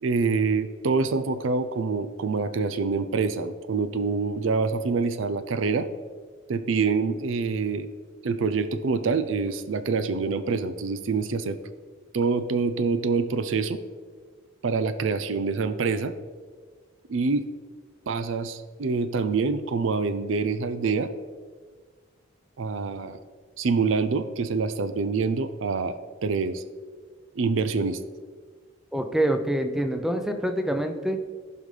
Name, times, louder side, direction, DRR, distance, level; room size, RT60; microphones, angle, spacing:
voice 1, 0.0-5.9 6.5-7.9 8.2-11.6 12.1-13.8 14.6-16.1 17.1-17.4 18.1-21.1 22.6-23.2 23.6-26.0 26.2-26.6 27.3-28.0, right 4 dB, 75° right, 11 dB, 0.5 m, -26 dB
voice 2, 28.9-31.2, right 1 dB, ahead, 6 dB, 0.5 m, -26 dB
15.0 x 5.3 x 3.3 m, 1.5 s
head